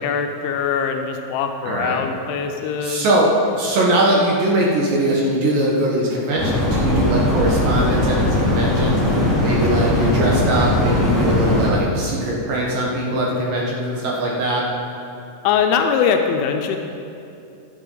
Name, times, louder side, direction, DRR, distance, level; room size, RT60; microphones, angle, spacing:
voice 1, 0.0-3.1 15.4-16.8, left 7 dB, 85° left, 5 dB, 3.0 m, -21 dB
voice 2, 1.6-2.1 2.8-14.6, right 1 dB, 65° right, -4 dB, 2.4 m, -21 dB
sound 1, 6.4-11.7, left 1 dB, 25° left, 1.7 m, -19 dB
16.0 x 10.0 x 3.9 m, 2.6 s
omnidirectional pair, 5.4 m